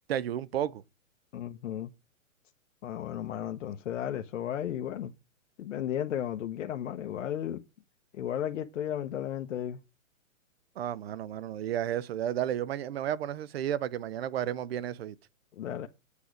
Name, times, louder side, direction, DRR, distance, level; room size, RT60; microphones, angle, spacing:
voice 1, 0.1-0.8 10.8-15.2, right 10 dB, 50° right, 0.7 m, -32 dB
voice 2, 1.3-1.9 2.8-5.1 5.6-7.6 8.1-9.8 15.6-15.9, left 10 dB, 65° left, 0.9 m, -34 dB
8.4 x 8.0 x 5.0 m
hypercardioid pair, 155°, 40 cm